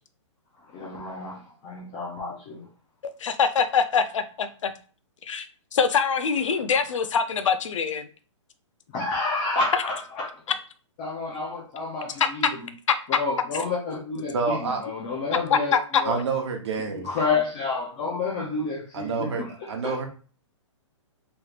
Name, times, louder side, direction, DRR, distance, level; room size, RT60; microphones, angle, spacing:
voice 1, 0.7-2.7 8.9-10.3 11.0-12.6 13.2-16.2 16.9-19.5 19.8-19.9, left 3 dB, 20° left, 0.4 m, -29 dB
voice 2, 3.2-4.7 5.2-5.5 5.7-8.1 9.7-9.8 12.2-12.5 15.5-16.0, left 6 dB, 75° left, 0.5 m, -24 dB
voice 3, 14.3-14.8 16.0-17.1 18.9-20.1, right 4 dB, 60° right, 0.9 m, -28 dB
3.1 x 3.1 x 2.4 m
hypercardioid pair, 170°, 16 cm